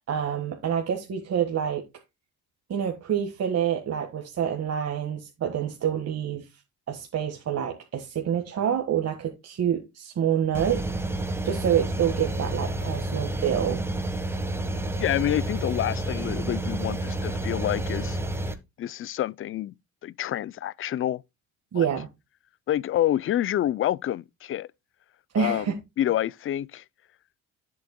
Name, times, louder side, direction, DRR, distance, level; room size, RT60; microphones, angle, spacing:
voice 1, 0.1-1.8 2.7-6.5 6.9-10.8 11.4-13.8 21.7-22.1 25.3-25.8, right 8 dB, 55° right, 1.6 m, -27 dB
sound 1, 10.5-18.5, right 2 dB, 10° right, 1.3 m, -30 dB
voice 2, 15.0-18.2 18.8-19.7 20.0-21.2 21.7-21.9 22.7-24.7 25.4-25.7 26.0-26.8, left 12 dB, 45° left, 0.4 m, -27 dB
11.0 x 7.9 x 2.2 m
cardioid pair, 90°, 30 cm